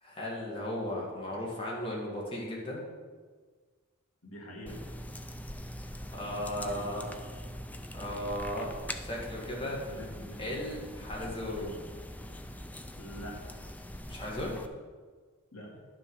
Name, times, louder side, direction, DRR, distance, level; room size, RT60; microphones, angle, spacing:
voice 1, 0.0-2.8 6.1-7.1 7.9-8.7 9.0-9.8 10.4-11.9 14.1-14.5, left 1 dB, 25° left, -3 dB, 1.9 m, -36 dB
voice 2, 4.2-4.8 6.0-6.2 6.6-7.1 9.6-10.5 13.0-13.6 15.5-15.9, equal, 75° left, -2 dB, 2.2 m, -45 dB
sound 1, 4.7-14.7, left 1 dB, 5° left, 0.4 m, -43 dB
10.5 x 6.0 x 4.8 m, 1.5 s
head